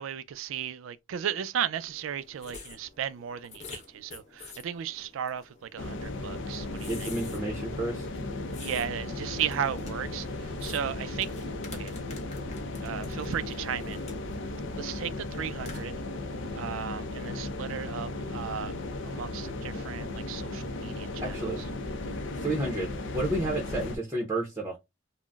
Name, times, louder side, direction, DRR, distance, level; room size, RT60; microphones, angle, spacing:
voice 1, 0.0-7.1 8.6-11.9 12.8-14.0 14.8-16.0 16.5-18.7 19.0-21.7, right 9 dB, 85° right, 0.3 m, -35 dB
sound 1, 1.8-15.8, left 4 dB, 35° left, 0.8 m, -49 dB
sound 2, 5.8-24.0, left 2 dB, 70° left, 0.5 m, -36 dB
voice 2, 6.9-8.1 21.2-21.6 22.3-24.8, right 2 dB, 15° right, 0.7 m, -31 dB
3.7 x 2.1 x 2.2 m
head